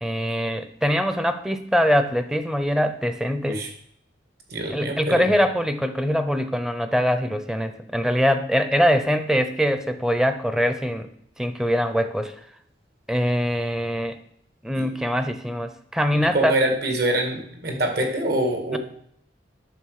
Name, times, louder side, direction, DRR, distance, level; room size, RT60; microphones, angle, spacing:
voice 1, 0.0-3.6 4.7-11.1 11.4-12.3 13.1-14.2 14.6-16.5 18.7-18.8, equal, 5° right, 9 dB, 0.7 m, -23 dB
voice 2, 4.5-5.3 14.8-14.9 16.3-18.8, right 1 dB, 60° right, 4 dB, 2.1 m, -25 dB
9.2 x 6.4 x 6.5 m, 0.68 s
head